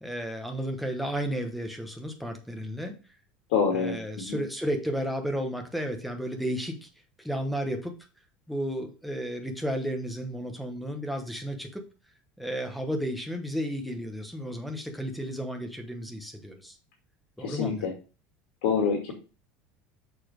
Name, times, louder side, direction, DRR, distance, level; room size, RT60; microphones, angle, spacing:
voice 1, 0.0-2.9 3.7-6.9 7.2-7.9 8.5-11.8 12.4-16.8 17.4-17.9, equal, ahead, 5 dB, 1.1 m, -33 dB
voice 2, 3.5-4.0 4.3-4.4 17.4-17.9 18.6-19.1, left 6 dB, 80° left, 1 dB, 2.2 m, -26 dB
6.8 x 4.2 x 5.1 m, 0.34 s
cardioid pair, 160°, 5 cm